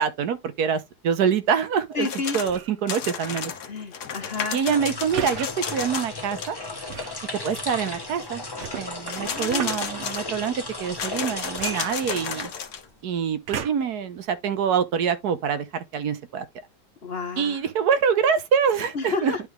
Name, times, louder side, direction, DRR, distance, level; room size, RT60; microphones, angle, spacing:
voice 1, 0.0-2.1 2.3-3.5 4.5-6.6 7.4-8.4 8.7-12.5 13.0-16.5 17.4-19.3, right 7 dB, 75° right, 1.4 m, -25 dB
voice 2, 1.9-2.4 3.6-4.6 9.2-10.0 17.0-17.6 18.9-19.4, left 4 dB, 45° left, 1.1 m, -31 dB
sound 1, 2.0-2.6 2.9-6.2 6.4-6.5 9.1-10.5 11.0-12.9, left 7 dB, 80° left, 1.6 m, -33 dB
sound 2, 2.4-2.8 5.1-5.5 6.9-7.2 8.6-9.9 11.5-12.5 13.5-14.0 14.7-14.8, right 8 dB, 55° right, 1.0 m, -35 dB
sound 3, 4.6-13.0, left 2 dB, 15° left, 1.1 m, -35 dB
10.5 x 3.8 x 3.2 m
omnidirectional pair, 1.7 m